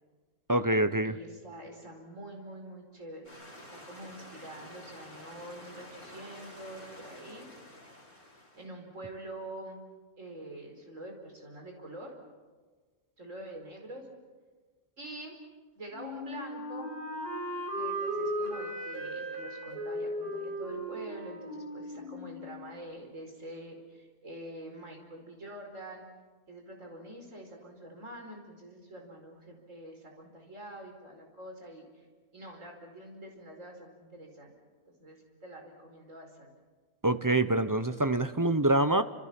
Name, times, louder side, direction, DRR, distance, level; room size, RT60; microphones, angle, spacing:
voice 1, 0.5-1.1 37.0-39.0, right 1 dB, 20° right, 11 dB, 0.6 m, -25 dB
voice 2, 1.0-3.3 3.6-7.5 8.6-9.8 10.2-12.2 13.2-14.1 15.0-15.4 15.8-16.9 17.7-26.1 26.5-32.1 32.3-34.5 34.9-36.5, right 1 dB, 60° right, 2 dB, 5.2 m, -46 dB
sound 1, 3.2-8.7, left 1 dB, 35° left, 5.1 m, -50 dB
Wind instrument woodwind instrument, 15.9-22.7, equal, 85° right, 5.9 m, -37 dB
29.0 x 27.5 x 6.0 m, 1.4 s
omnidirectional pair, 1.5 m